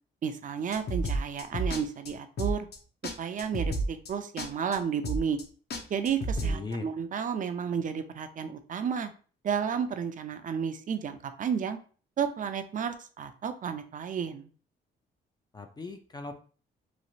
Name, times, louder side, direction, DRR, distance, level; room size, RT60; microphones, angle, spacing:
voice 1, 0.2-2.7 3.2-5.4 5.9-9.1 9.4-11.8 12.2-14.5, right 7 dB, 40° right, 9 dB, 0.5 m, -32 dB
sound 1, 0.7-1.8 2.1-2.2 2.4-2.8 3.0-3.1 3.4-4.1 4.4-4.8 5.0-5.4 5.7-6.5, right 1 dB, 55° left, 0.7 m, -30 dB
voice 2, 6.4-6.8 15.5-16.4, left 3 dB, 20° left, 6 dB, 0.4 m, -38 dB
3.1 x 2.4 x 2.7 m, 0.40 s
cardioid pair, 90°, 20 cm